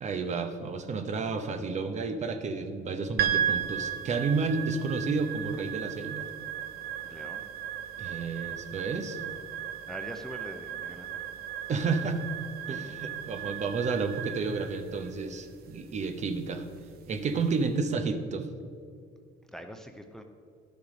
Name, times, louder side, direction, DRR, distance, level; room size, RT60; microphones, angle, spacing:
voice 1, 0.0-6.3 8.0-9.2 11.7-12.2 12.7-16.6 17.1-18.5, right 4 dB, 45° right, 8 dB, 0.9 m, -31 dB
sound 1, 3.2-17.6, right 9 dB, 65° right, 0.7 m, -36 dB
voice 2, 7.0-7.4 9.9-11.2 19.5-20.2, equal, 5° left, 5 dB, 0.7 m, -43 dB
12.0 x 6.9 x 5.1 m, 2.3 s
cardioid pair, 110°, 17 cm